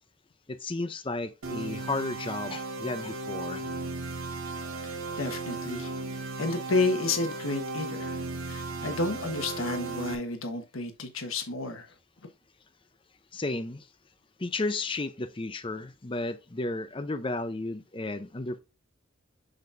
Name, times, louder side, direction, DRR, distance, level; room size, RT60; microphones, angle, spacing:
voice 1, 0.5-3.7 13.3-13.9 14.4-18.6, left 2 dB, 25° left, 0.6 m, -33 dB
sound 1, 1.4-10.1, right 3 dB, 90° right, 1.2 m, -36 dB
voice 2, 4.8-5.9 6.4-8.2 8.5-11.9, left 3 dB, 80° left, 1.3 m, -31 dB
7.8 x 5.2 x 2.6 m
head